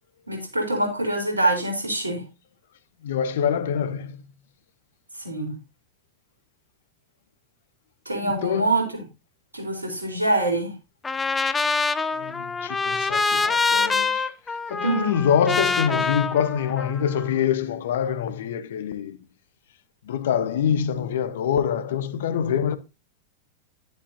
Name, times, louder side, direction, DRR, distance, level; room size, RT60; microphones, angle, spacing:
voice 1, 0.3-2.2 5.1-5.5 8.1-8.8 9.5-10.8 14.8-15.2, right 2 dB, 85° right, 3.9 m, -25 dB
voice 2, 3.0-4.2 8.2-8.7 12.2-14.3 14.7-19.2 20.0-22.8, left 8 dB, 65° left, 1.0 m, -25 dB
Trumpet, 11.0-17.3, left 4 dB, 15° left, 0.8 m, -25 dB
11.0 x 10.5 x 2.7 m
figure-of-eight pair, 90°, 0 cm